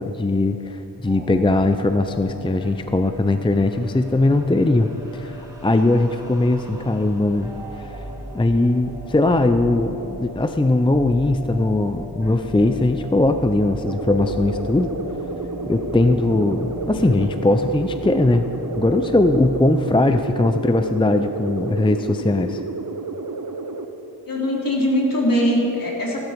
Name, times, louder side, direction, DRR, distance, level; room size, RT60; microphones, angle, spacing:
voice 1, 0.0-7.6 7.8-7.9 8.3-14.9 15.7-18.5 18.8-22.6, left 2 dB, 10° left, 8 dB, 0.6 m, -20 dB
sound 1, 1.1-20.2, right 1 dB, 10° right, 3.1 m, -37 dB
sound 2, 13.9-23.9, right 4 dB, 50° right, 1.0 m, -31 dB
voice 2, 24.3-26.3, equal, 55° left, -3 dB, 3.7 m, -21 dB
17.0 x 12.5 x 5.2 m, 3.0 s
wide cardioid pair, 65°, 41 cm